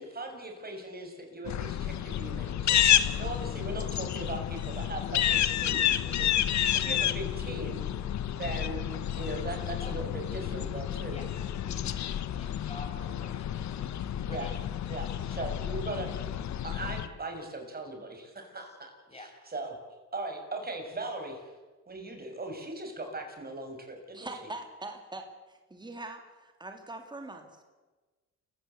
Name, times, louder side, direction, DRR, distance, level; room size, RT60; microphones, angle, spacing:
voice 1, 0.0-2.8 3.2-6.3 6.8-7.8 8.4-8.9 9.2-11.2 14.3-14.5 14.9-16.1 16.6-19.7 20.1-21.5 21.9-24.3, right 2 dB, 30° right, 4 dB, 6.5 m, -39 dB
sound 1, 1.5-17.1, left 11 dB, 65° left, 1.2 m, -30 dB
voice 2, 9.8-14.5 15.2-15.4 18.6-18.7 19.1-19.3, left 1 dB, 20° left, 2 dB, 6.5 m, -49 dB
voice 3, 24.1-27.6, right 2 dB, 15° right, 4 dB, 3.3 m, -43 dB
28.5 x 15.5 x 8.3 m, 1.3 s
cardioid pair, 90°, 30 cm